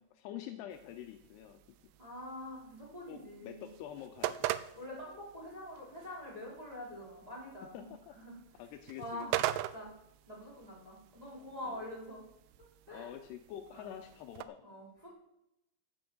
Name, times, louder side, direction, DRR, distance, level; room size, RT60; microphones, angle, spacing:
voice 1, 0.1-1.8 3.1-4.5 7.7-8.2 8.5-9.5 11.6-11.8 12.9-14.6, left 11 dB, 85° left, 6 dB, 2.4 m, -47 dB
sound 1, 0.7-14.5, right 14 dB, 85° right, 2.4 m, -43 dB
voice 2, 2.0-3.7 4.7-7.9 8.1-8.4 9.0-9.4 9.7-9.9 10.3-12.2 12.6-13.1 13.7-13.9 14.6-15.1, left 1 dB, 10° right, -6 dB, 4.3 m, -45 dB
9.5 x 7.8 x 7.7 m, 0.85 s
omnidirectional pair, 5.3 m